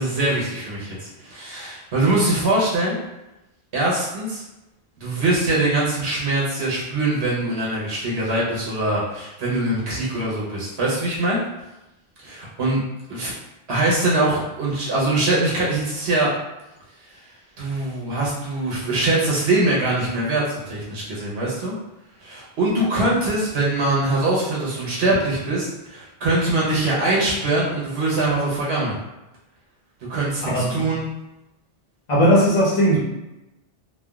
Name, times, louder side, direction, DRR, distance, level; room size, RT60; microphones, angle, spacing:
voice 1, 0.0-3.0 3.7-4.4 5.0-11.4 12.2-12.8 13.1-13.3 13.7-16.3 17.6-21.7 22.2-28.9 30.1-31.1, right 2 dB, 85° right, -6 dB, 1.1 m, -22 dB
voice 2, 30.4-30.8 32.1-33.0, equal, 35° left, -6 dB, 0.6 m, -17 dB
3.3 x 2.2 x 2.3 m, 0.96 s
omnidirectional pair, 1.0 m